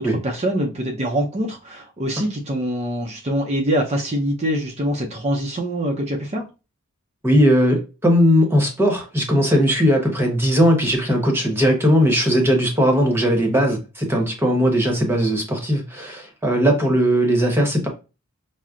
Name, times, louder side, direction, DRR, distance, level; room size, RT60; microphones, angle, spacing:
voice 1, 0.0-6.4, equal, 30° right, 0.6 m, -24 dB
voice 2, 7.2-17.9, equal, 10° right, 1.0 m, -18 dB
5.7 x 2.1 x 2.4 m
head